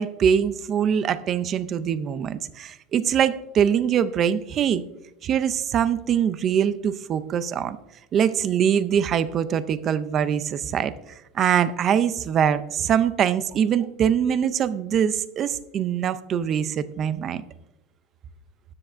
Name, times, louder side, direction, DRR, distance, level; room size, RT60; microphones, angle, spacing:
voice 1, 0.0-4.8 5.2-7.8 8.1-10.9 11.3-17.4, right 8 dB, 25° right, 15 dB, 0.4 m, -23 dB
13.0 x 10.0 x 2.5 m, 0.94 s
supercardioid pair, 175°, 0 cm